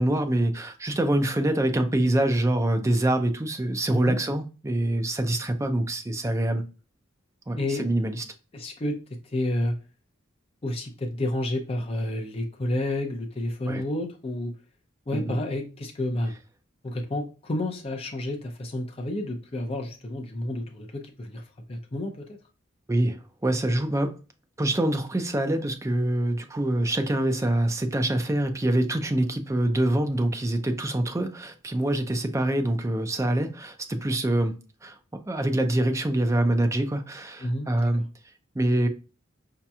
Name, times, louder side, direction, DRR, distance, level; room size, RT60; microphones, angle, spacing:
voice 1, 0.0-6.6 7.5-8.2 13.7-13.8 15.1-15.4 22.9-24.1 24.6-34.5 34.8-35.0 35.3-38.0 38.6-38.9, right 1 dB, 15° right, 0.5 m, -25 dB
voice 2, 8.5-9.0 9.3-9.7 10.6-14.5 15.1-16.3 16.8-21.4 21.7-22.2 37.4-37.9, left 1 dB, 30° left, 0.6 m, -30 dB
5.0 x 2.9 x 2.2 m
head